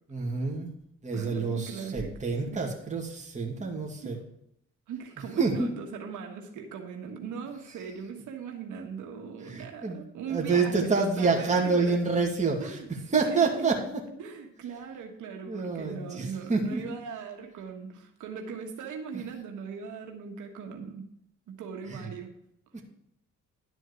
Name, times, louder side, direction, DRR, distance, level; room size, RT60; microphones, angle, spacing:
voice 1, 0.1-0.7 1.0-4.2 5.4-5.7 9.4-10.0 10.3-12.8 13.1-14.0 15.5-16.8 19.1-19.2 21.9-22.1 22.7-22.8, right 4 dB, 25° right, -1 dB, 2.2 m, -27 dB
voice 2, 1.1-2.1 2.5-2.6 4.0-4.1 4.9-12.0 12.6-12.9 13.2-13.7 14.2-21.1 21.5-22.4, right 6 dB, 75° right, 3 dB, 1.5 m, -39 dB
11.5 x 4.5 x 8.3 m, 0.75 s
cardioid pair, 90°, 30 cm